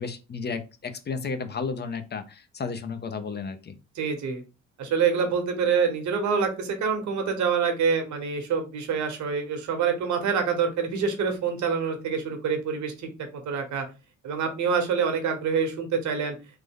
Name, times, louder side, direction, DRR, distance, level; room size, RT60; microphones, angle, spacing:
voice 1, 0.0-3.7, left 5 dB, 35° left, 9 dB, 0.5 m, -33 dB
voice 2, 3.9-4.4 4.8-13.8 14.2-16.3, right 6 dB, 70° right, 6 dB, 1.0 m, -26 dB
3.3 x 2.0 x 3.6 m, 0.30 s
cardioid pair, 90°, 30 cm